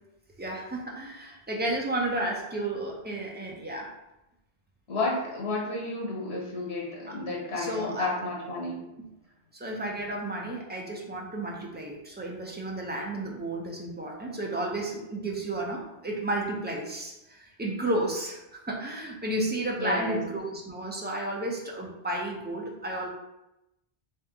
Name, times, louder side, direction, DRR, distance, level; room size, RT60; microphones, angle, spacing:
voice 1, 0.4-3.9 7.1-7.2 7.5-8.1 9.5-23.1, right 1 dB, 15° right, -2 dB, 0.4 m, -32 dB
voice 2, 4.9-8.9 19.8-20.2, left 2 dB, 85° left, -3 dB, 1.3 m, -31 dB
3.4 x 2.9 x 3.5 m, 0.91 s
omnidirectional pair, 1.1 m